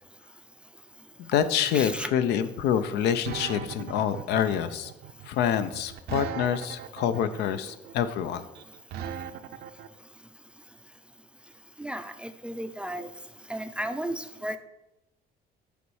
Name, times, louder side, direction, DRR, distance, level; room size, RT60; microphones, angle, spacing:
voice 1, 1.2-4.9 5.3-8.4, left 9 dB, 80° left, 12 dB, 0.5 m, -26 dB
voice 2, 1.7-2.1 11.8-13.1 13.5-14.6, right 1 dB, 5° right, 9 dB, 0.3 m, -34 dB
sound 1, 1.7-9.9, right 9 dB, 75° right, 0.5 m, -39 dB
8.1 x 3.1 x 4.7 m, 0.92 s
cardioid pair, 110°, 17 cm